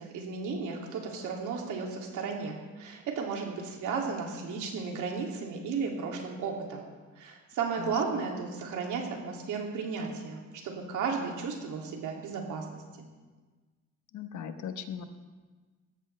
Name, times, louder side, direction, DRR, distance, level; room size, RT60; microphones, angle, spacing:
voice 1, 0.0-6.9 7.2-10.4 10.6-12.8, right 5 dB, 80° right, 0 dB, 2.8 m, -34 dB
voice 2, 14.1-15.1, left 8 dB, 70° left, 8 dB, 1.1 m, -38 dB
18.0 x 14.0 x 3.4 m, 1.4 s
cardioid pair, 90°, 30 cm